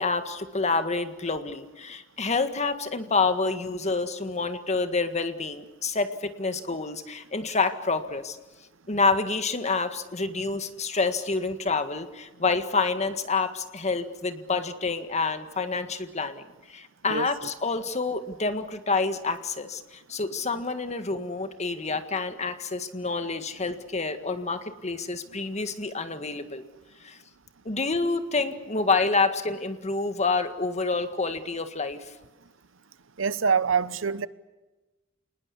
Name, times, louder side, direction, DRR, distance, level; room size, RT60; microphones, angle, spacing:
voice 1, 0.0-8.4 8.9-16.4 16.7-26.6 27.0-27.2 27.6-32.1, left 4 dB, 35° left, 1.8 m, -28 dB
voice 2, 33.2-34.3, right 6 dB, 70° right, 0.9 m, -25 dB
28.0 x 20.0 x 8.4 m
head